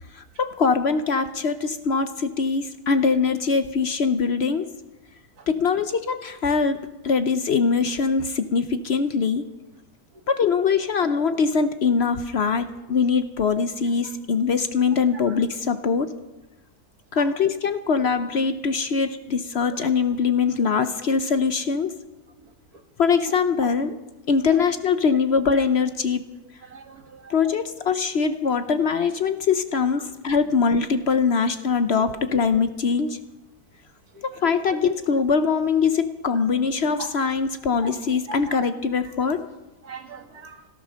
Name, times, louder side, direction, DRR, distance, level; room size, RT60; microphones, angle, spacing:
voice 1, 0.1-4.7 5.5-9.4 10.3-16.1 17.1-22.0 23.0-23.9 24.3-26.2 27.3-33.2 34.2-39.4, left 5 dB, 55° left, 10 dB, 0.8 m, -22 dB
voice 2, 26.7-27.3 32.0-32.1 34.1-34.4 37.0-37.1 37.8-37.9 38.3-38.6 39.8-40.6, right 3 dB, 85° right, 5 dB, 2.2 m, -40 dB
17.0 x 12.0 x 6.3 m, 1.0 s
omnidirectional pair, 1.6 m